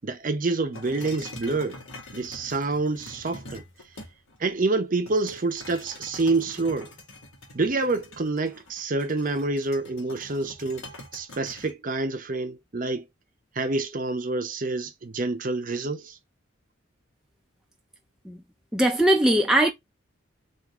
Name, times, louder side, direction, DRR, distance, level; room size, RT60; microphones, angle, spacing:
voice 1, 0.0-1.8 2.1-3.6 4.4-6.9 7.5-10.9 11.1-13.1 13.6-16.2, right 3 dB, 40° right, 0.6 m, -27 dB
sound 1, 0.7-4.4 5.1-11.7, left 2 dB, 85° left, 1.5 m, -44 dB
voice 2, 18.7-19.7, right 1 dB, 5° right, 0.4 m, -20 dB
3.6 x 2.6 x 4.5 m
head